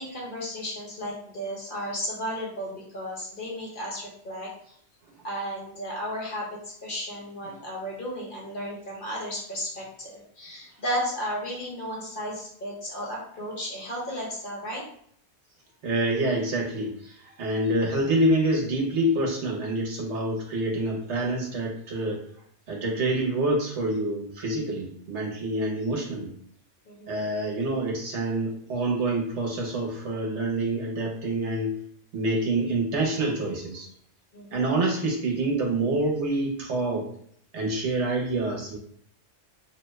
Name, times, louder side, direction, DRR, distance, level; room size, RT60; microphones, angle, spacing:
voice 1, 0.0-4.5 5.2-14.8 26.8-27.3 34.3-34.7, equal, 50° left, -4 dB, 1.1 m, -34 dB
voice 2, 15.8-22.2 22.7-26.3 27.1-31.8 32.1-33.9 34.5-37.1 37.5-38.8, right 2 dB, 75° right, -1 dB, 1.2 m, -27 dB
2.8 x 2.2 x 3.1 m, 0.64 s
omnidirectional pair, 1.2 m